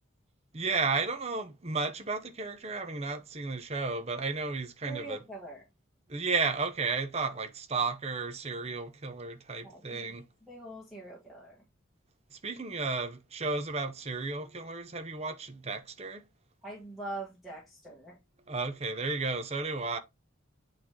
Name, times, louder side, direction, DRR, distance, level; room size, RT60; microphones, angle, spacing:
voice 1, 0.5-5.2 6.1-10.3 12.3-16.2 18.5-20.0, right 4 dB, 30° right, 0.7 m, -33 dB
voice 2, 4.8-5.6 9.6-10.1 10.5-11.6 16.6-18.2, right 2 dB, ahead, 1.6 m, -43 dB
8.5 x 3.3 x 3.7 m
head